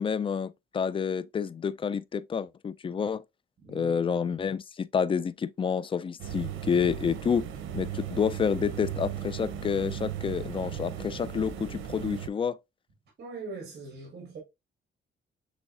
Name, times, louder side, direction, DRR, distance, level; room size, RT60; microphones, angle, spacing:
voice 1, 0.0-3.2 3.7-7.5 7.7-12.6, left 6 dB, 25° left, 0.3 m, -29 dB
voice 2, 3.6-3.9 13.2-14.4, right 3 dB, 55° right, 1.7 m, -41 dB
sound 1, 6.2-12.3, right 10 dB, 85° right, 0.8 m, -36 dB
6.2 x 3.5 x 2.4 m
cardioid pair, 90°, 20 cm